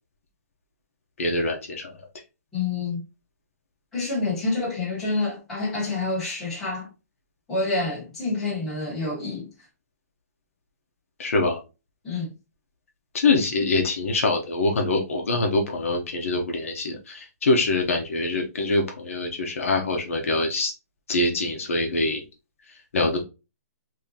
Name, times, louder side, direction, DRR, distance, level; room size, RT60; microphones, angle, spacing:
voice 1, 1.2-2.0 11.2-11.6 13.1-20.7 21.1-22.2 22.9-23.2, left 2 dB, 55° left, 0.8 m, -24 dB
voice 2, 2.5-3.0 3.9-6.9 7.5-9.5 12.0-12.3, left 3 dB, 5° left, 1.2 m, -27 dB
3.6 x 2.8 x 2.7 m
hypercardioid pair, 180°, 9 cm